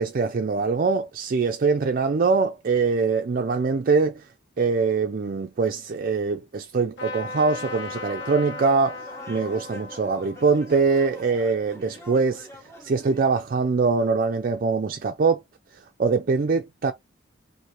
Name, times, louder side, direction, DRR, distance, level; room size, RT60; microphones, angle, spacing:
voice 1, 0.0-4.3 4.6-12.5 12.8-15.4 16.0-16.9, right 4 dB, 45° right, 0.4 m, -23 dB
Trumpet, 7.0-12.5, left 4 dB, 60° left, 1.3 m, -39 dB
sound 1, 7.6-13.2, left 1 dB, 15° left, 1.2 m, -45 dB
3.1 x 2.6 x 4.5 m
head